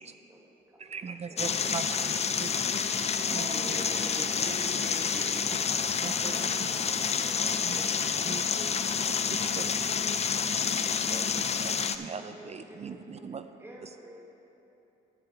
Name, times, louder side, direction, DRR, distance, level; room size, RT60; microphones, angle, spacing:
voice 1, 0.0-2.1 3.2-4.4 6.2-11.7 12.0-14.3, equal, 10° right, -1 dB, 1.6 m, -51 dB
voice 2, 0.8-2.5 3.3-3.8 5.7-6.5 7.6-7.8 8.3-8.4 9.6-9.7 11.1-13.5, right 6 dB, 35° right, 9 dB, 0.4 m, -40 dB
sound 1, 1.4-12.0, left 6 dB, 35° left, 0.4 m, -29 dB
voice 3, 3.3-5.4, right 2 dB, 55° right, -3 dB, 2.1 m, -40 dB
10.0 x 4.8 x 7.1 m, 3.0 s
cardioid pair, 90°, 20 cm